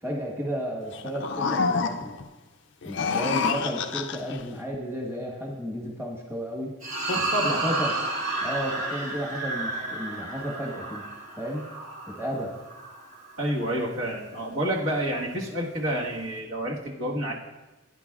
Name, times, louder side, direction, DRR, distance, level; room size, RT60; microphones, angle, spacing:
voice 1, 0.0-2.2 2.8-6.7 7.4-7.9 8.4-11.0 11.4-11.7 12.1-12.5, equal, 10° right, -3 dB, 1.3 m, -33 dB
sound 1, 0.9-2.3 2.8-4.4, left 5 dB, 55° left, 0.4 m, -28 dB
sound 2, 6.8-13.4, right 2 dB, 35° right, 1.7 m, -31 dB
voice 2, 7.1-7.6 13.4-17.3, equal, 70° right, -2 dB, 1.5 m, -29 dB
16.5 x 9.9 x 2.4 m, 1.1 s
head